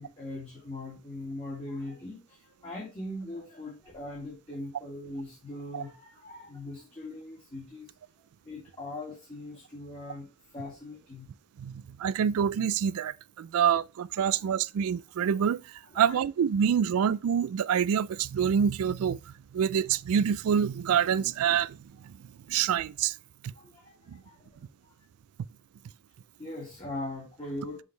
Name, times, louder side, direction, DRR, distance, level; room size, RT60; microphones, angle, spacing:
voice 1, 0.0-7.9 8.4-10.3 10.5-11.3 14.2-14.3 15.9-16.2 23.5-24.9 26.4-27.8, left 2 dB, 25° left, 2.1 m, -40 dB
voice 2, 11.6-15.6 15.9-21.8 22.0-22.2 22.5-23.1 23.4-23.5 24.1-24.2, right 8 dB, 80° right, 0.3 m, -26 dB
6.3 x 5.1 x 3.2 m
head